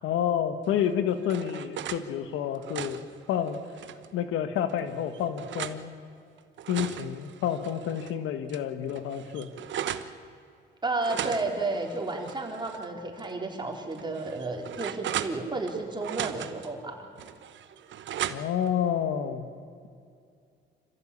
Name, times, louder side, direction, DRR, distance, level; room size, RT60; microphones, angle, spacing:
voice 1, 0.0-3.6 4.1-5.9 6.7-9.5 18.3-19.5, left 9 dB, 90° left, 9 dB, 1.5 m, -29 dB
sound 1, 0.8-2.0 2.5-4.1 4.7-5.8 6.4-8.1 8.5-8.6 8.9-10.1 11.0-12.9 13.2-13.3 13.9-15.7 16.0-16.7 17.2-18.7, right 10 dB, 70° right, 1.1 m, -37 dB
voice 2, 10.8-17.1, right 3 dB, 20° right, 1 dB, 4.3 m, -32 dB
26.0 x 15.5 x 8.6 m, 2.4 s
cardioid pair, 90°, 20 cm